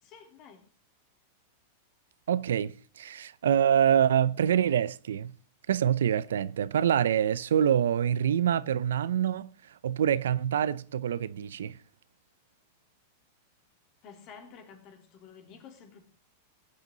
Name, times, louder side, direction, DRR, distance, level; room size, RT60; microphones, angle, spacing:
voice 1, 0.0-0.7 14.0-16.0, left 6 dB, 45° left, 3.6 m, -51 dB
voice 2, 2.3-5.3 5.7-9.5 9.8-11.8, right 9 dB, 85° right, 0.6 m, -26 dB
17.0 x 9.2 x 3.9 m
hypercardioid pair, 120°, 0 cm